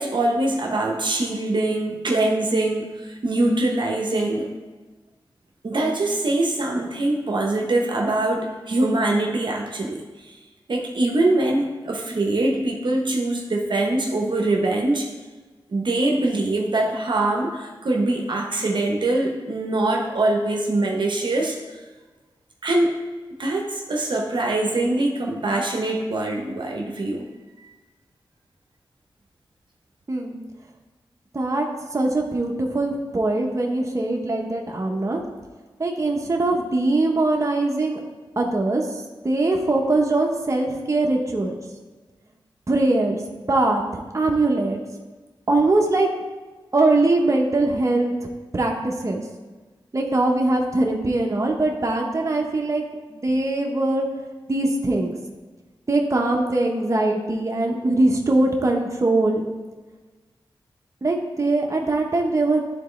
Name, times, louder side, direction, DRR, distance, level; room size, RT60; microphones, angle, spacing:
voice 1, 0.0-4.5 5.6-10.3 10.7-15.1 15.7-21.8 22.6-22.9 23.4-27.2, right 2 dB, 60° right, 0 dB, 0.9 m, -23 dB
voice 2, 30.1-30.4 31.3-31.7 31.9-35.2 35.8-38.0 38.4-38.9 39.2-41.6 42.7-44.8 45.5-46.1 46.7-48.3 48.5-49.2 49.9-52.8 53.1-54.1 54.5-55.1 55.9-59.4 61.0-62.6, right 2 dB, 35° right, 1 dB, 1.0 m, -22 dB
11.5 x 4.0 x 3.2 m, 1.3 s
cardioid pair, 60°, 9 cm